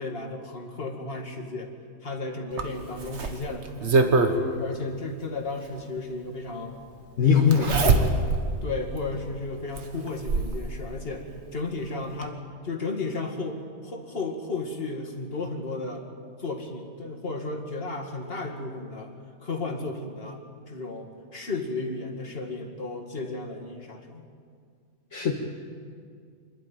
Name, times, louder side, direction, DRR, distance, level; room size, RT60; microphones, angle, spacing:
voice 1, 0.0-1.7 2.0-3.9 4.3-6.7 7.3-8.2 8.6-13.6 13.8-16.0 16.4-19.1 19.4-20.4 20.7-24.2, left 3 dB, 40° left, 1 dB, 2.4 m, -34 dB
Zipper (clothing), 2.6-4.4 5.8-5.9 7.5-8.5 9.0-9.1 9.8-10.6 11.8-11.9 12.2-12.3, right 4 dB, 50° right, 1.5 m, -23 dB
voice 2, 7.2-8.0 25.1-25.3, left 6 dB, 60° left, -1 dB, 1.8 m, -21 dB
26.0 x 12.0 x 9.1 m, 2.2 s
omnidirectional pair, 1.5 m